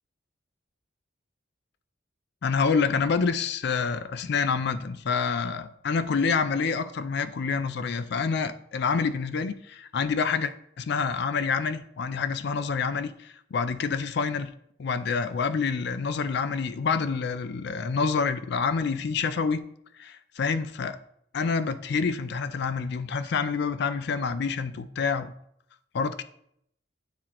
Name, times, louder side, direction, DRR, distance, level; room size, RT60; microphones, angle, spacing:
voice 1, 2.4-14.5 14.8-19.6 20.0-21.0 21.3-25.3 25.9-26.2, left 5 dB, 60° left, 0.4 m, -27 dB
9.4 x 3.7 x 2.9 m
head